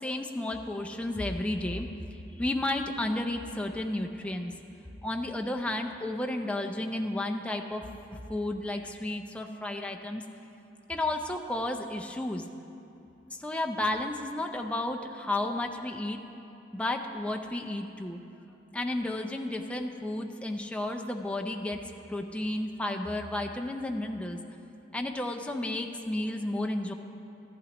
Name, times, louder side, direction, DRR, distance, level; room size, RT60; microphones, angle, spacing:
voice 1, 0.0-4.5 5.0-7.8 8.1-10.2 10.9-12.5 13.4-16.2 16.7-18.2 18.7-21.8 22.1-24.4 24.9-26.9, left 1 dB, 5° left, 3 dB, 0.4 m, -32 dB
13.5 x 11.5 x 2.9 m, 2.8 s
head